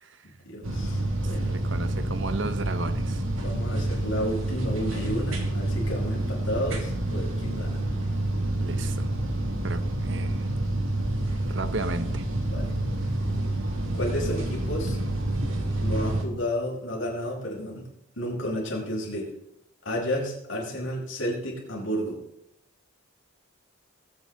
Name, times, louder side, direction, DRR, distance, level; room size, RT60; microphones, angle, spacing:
voice 1, 0.2-1.6 3.4-7.8 12.5-12.7 13.9-15.0 15.8-17.9 18.2-19.3 19.8-22.2, equal, 70° left, -2 dB, 5.3 m, -31 dB
sound 1, 0.6-16.3, right 1 dB, 85° right, 2.3 m, -28 dB
voice 2, 1.2-3.2 8.6-9.1 9.6-10.5 11.5-12.2, right 3 dB, 65° right, 11 dB, 1.0 m, -34 dB
20.5 x 8.8 x 4.0 m, 0.77 s
head